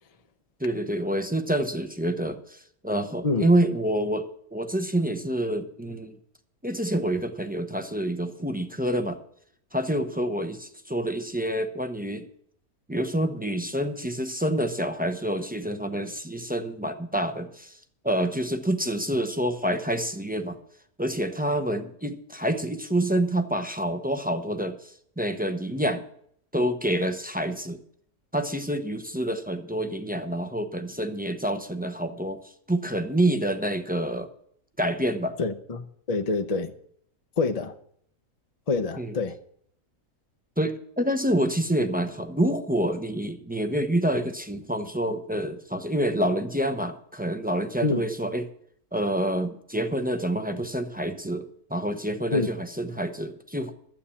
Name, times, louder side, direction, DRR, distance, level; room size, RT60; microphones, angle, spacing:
voice 1, 0.6-6.1 6.6-9.2 9.7-12.2 12.9-17.8 18.0-20.6 21.0-24.8 25.2-26.0 26.5-27.8 28.3-32.4 32.7-34.3 34.8-35.4 39.0-39.2 40.6-48.5 48.9-53.7, right 1 dB, 10° right, 0.4 m, -27 dB
voice 2, 35.4-36.7 37.4-37.7 38.7-39.4 47.8-48.0 52.3-52.5, left 3 dB, 40° left, 0.6 m, -26 dB
12.0 x 8.6 x 7.0 m
omnidirectional pair, 1.6 m